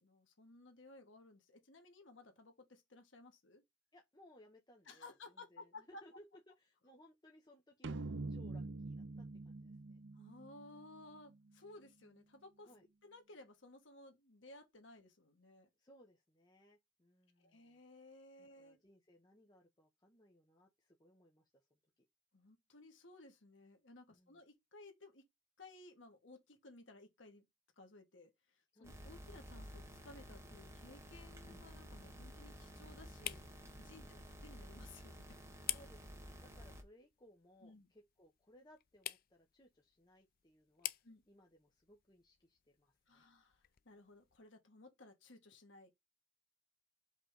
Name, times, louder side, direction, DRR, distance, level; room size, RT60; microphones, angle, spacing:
voice 1, 0.0-3.6 4.9-6.0 10.1-12.7 13.0-15.7 17.4-18.8 22.3-25.2 25.6-27.4 27.8-28.3 28.8-33.4 33.8-35.4 37.6-37.9 41.0-41.2 43.1-45.9, left 2 dB, 75° left, 1.5 m, -58 dB
voice 2, 3.9-8.0 8.3-10.0 12.6-12.9 15.8-17.8 18.4-21.8 24.1-24.4 28.7-28.9 33.8-34.2 35.6-43.3, left 1 dB, 20° left, 1.1 m, -65 dB
sound 1, 7.8-11.3, right 3 dB, 65° right, 0.6 m, -45 dB
sound 2, 28.8-36.8, equal, 15° right, 1.5 m, -53 dB
sound 3, 29.7-44.5, left 14 dB, 50° left, 0.4 m, -51 dB
5.2 x 3.5 x 5.1 m
head